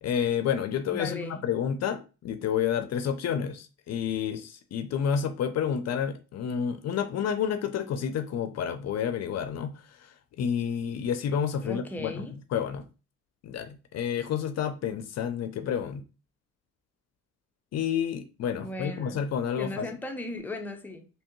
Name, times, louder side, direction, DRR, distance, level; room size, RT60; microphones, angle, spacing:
voice 1, 0.0-12.2 12.5-12.8 13.4-16.0 17.7-19.9, left 8 dB, 60° left, 0.5 m, -30 dB
voice 2, 0.9-1.4 11.6-12.3 18.5-19.3 19.6-21.1, left 1 dB, 5° left, 0.6 m, -37 dB
3.4 x 2.9 x 3.0 m
cardioid pair, 90°, 30 cm